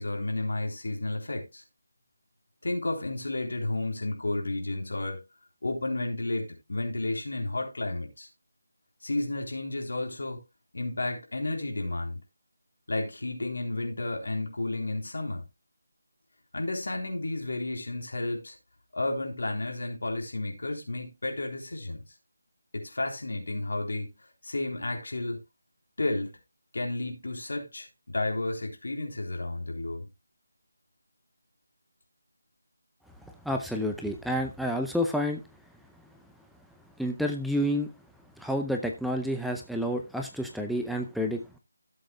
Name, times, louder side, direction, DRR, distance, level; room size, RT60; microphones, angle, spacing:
voice 1, 0.0-1.6 2.6-5.2 5.6-8.3 9.0-10.4 10.7-12.2 12.9-15.5 16.5-18.6 18.9-22.0 22.7-24.1 24.4-25.4 26.0-26.4 26.7-30.1, left 2 dB, 70° left, 3.6 m, -32 dB
voice 2, 33.5-35.4 37.0-37.9 38.4-41.4, equal, ahead, 0.6 m, -29 dB
16.0 x 7.8 x 2.3 m
figure-of-eight pair, 165°, 0 cm